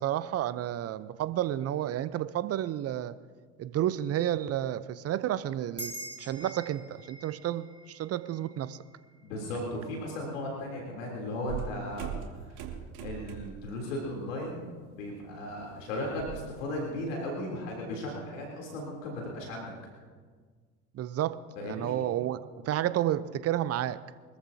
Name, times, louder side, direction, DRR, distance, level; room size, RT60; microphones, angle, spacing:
voice 1, 0.0-3.1 3.6-8.8 20.9-24.0, right 12 dB, 40° right, 15 dB, 0.8 m, -31 dB
sound 1, 5.8-10.5, right 1 dB, 10° right, 3.3 m, -46 dB
voice 2, 9.2-12.1 13.0-14.6 14.9-19.7 21.6-21.9, left 1 dB, 75° left, -1 dB, 3.4 m, -36 dB
sound 2, 11.5-13.7 14.1-14.4 14.7-16.5, right 8 dB, 60° right, 2.2 m, -40 dB
24.5 x 14.0 x 2.8 m, 1.5 s
hypercardioid pair, 75°, 39 cm